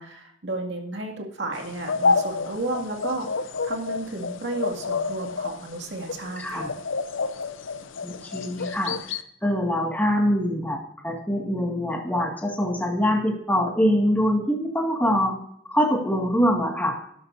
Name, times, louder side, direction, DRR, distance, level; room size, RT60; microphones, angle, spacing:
voice 1, 0.0-3.3 3.6-6.7, right 2 dB, 65° right, 2 dB, 2.2 m, -32 dB
sound 1, 1.5-9.2, left 4 dB, 80° left, 0.7 m, -29 dB
voice 2, 6.4-6.7 8.0-15.4 15.7-17.0, equal, 10° left, 1 dB, 1.9 m, -24 dB
12.0 x 12.0 x 2.6 m, 0.69 s
head